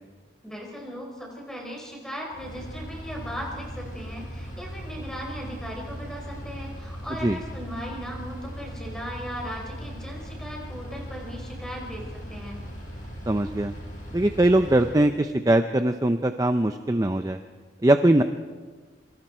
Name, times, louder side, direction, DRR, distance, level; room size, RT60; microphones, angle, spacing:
voice 1, 0.4-12.6, equal, 5° left, -1 dB, 4.7 m, -37 dB
Engine, 2.3-15.0, equal, 45° left, 6.9 m, -38 dB
voice 2, 13.3-13.7 14.1-17.4 17.8-18.2, right 1 dB, 20° right, 8 dB, 0.6 m, -21 dB
26.5 x 25.0 x 4.5 m, 1.5 s
head